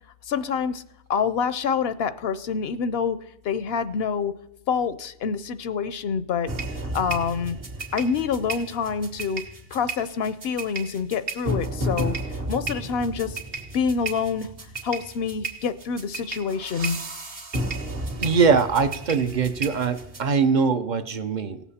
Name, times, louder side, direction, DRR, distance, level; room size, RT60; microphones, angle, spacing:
voice 1, 0.3-0.8 1.1-4.3 4.7-6.5 6.9-7.6 7.9-9.4 9.7-12.1 12.5-13.4 13.7-14.5 14.8-17.0, left 6 dB, 75° left, 14 dB, 0.8 m, -26 dB
sound 1, 6.5-20.2, right 2 dB, 65° right, 1.7 m, -33 dB
voice 2, 18.2-21.6, right 5 dB, 50° right, 10 dB, 0.8 m, -22 dB
17.5 x 7.3 x 4.2 m, 0.82 s
omnidirectional pair, 1.0 m